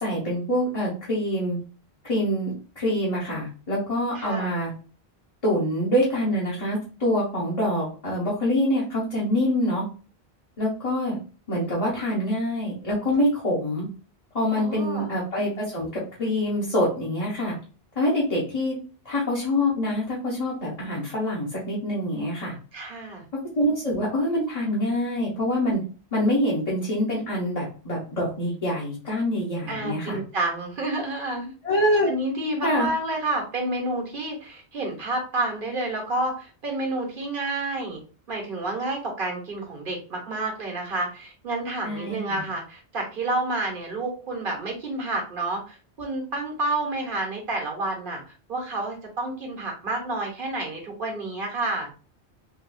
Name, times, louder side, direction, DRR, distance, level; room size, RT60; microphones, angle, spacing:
voice 1, 0.0-1.6 2.0-4.7 5.4-9.8 10.6-11.2 11.5-13.9 14.3-17.5 18.0-18.7 19.0-22.6 23.5-25.8 26.1-30.2 31.6-32.1 32.6-32.9 41.8-42.4, left 1 dB, 35° left, -7 dB, 1.2 m, -25 dB
voice 2, 4.1-4.6 14.6-15.1 22.7-23.2 29.7-31.5 32.1-38.0 38.3-51.9, right 2 dB, 55° right, 0 dB, 1.3 m, -29 dB
4.0 x 2.6 x 2.6 m, 0.36 s
omnidirectional pair, 1.1 m